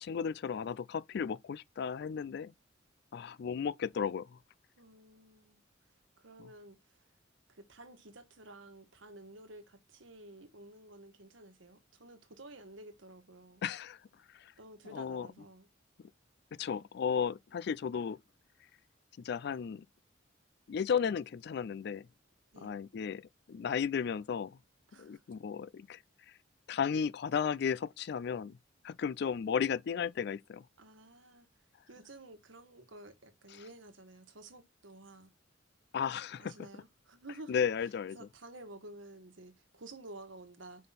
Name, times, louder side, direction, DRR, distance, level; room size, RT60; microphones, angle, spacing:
voice 1, 0.0-2.5 3.1-4.4 6.4-6.5 13.6-14.0 14.3-14.5 14.9-15.3 16.6-18.2 19.2-19.9 20.7-22.1 22.6-24.6 24.9-26.0 26.7-28.6 28.8-30.6 35.9-36.5 37.5-38.2, left 7 dB, 55° left, 0.3 m, -34 dB
voice 2, 4.8-5.6 6.2-7.1 7.5-13.6 14.6-15.7 22.5-22.8 24.9-25.3 30.8-35.3 36.4-37.6 38.1-40.9, right 2 dB, 80° right, 1.4 m, -52 dB
5.3 x 3.8 x 5.7 m
head